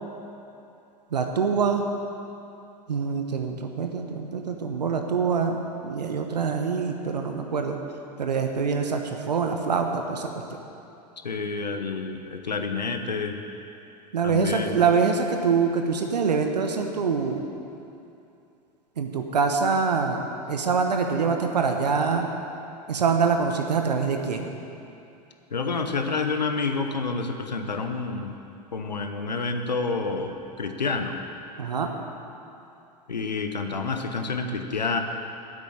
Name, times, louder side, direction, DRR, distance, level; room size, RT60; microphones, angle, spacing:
voice 1, 1.1-1.8 2.9-7.8 8.2-9.0 9.3-10.3 14.1-17.5 19.0-22.3 22.9-24.5 31.6-31.9, right 5 dB, 75° right, 4 dB, 1.1 m, -25 dB
voice 2, 11.2-13.4 14.2-14.8 25.5-28.4 28.7-31.2 33.1-35.0, left 4 dB, 85° left, 5 dB, 0.9 m, -29 dB
9.9 x 8.4 x 8.6 m, 2.7 s
figure-of-eight pair, 85°, 21 cm